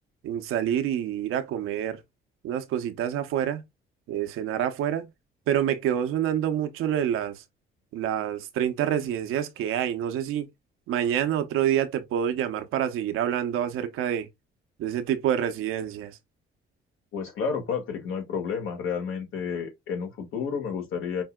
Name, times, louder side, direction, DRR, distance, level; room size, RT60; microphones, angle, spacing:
voice 1, 0.2-2.0 2.4-3.6 4.1-5.1 5.5-7.4 7.9-10.5 10.9-14.3 14.8-16.2, right 10 dB, 85° right, 0.8 m, -27 dB
voice 2, 17.1-21.2, left 6 dB, 75° left, 1.7 m, -31 dB
5.2 x 2.7 x 2.2 m
cardioid pair, 85°, 21 cm